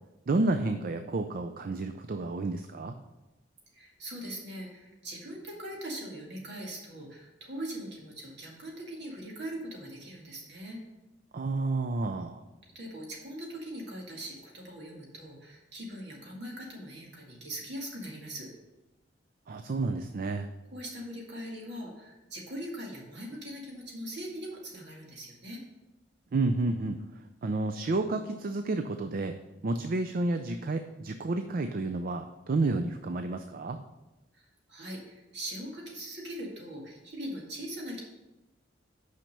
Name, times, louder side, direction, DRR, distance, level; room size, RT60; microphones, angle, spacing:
voice 1, 0.3-2.9 11.3-12.4 19.5-20.5 26.3-27.0 27.4-29.4 29.6-33.8, right 2 dB, 50° right, 8 dB, 0.4 m, -30 dB
voice 2, 3.7-10.8 12.6-18.5 20.7-25.6 34.3-38.0, right 1 dB, 65° right, -2 dB, 2.2 m, -41 dB
6.0 x 5.7 x 6.6 m, 1.0 s
head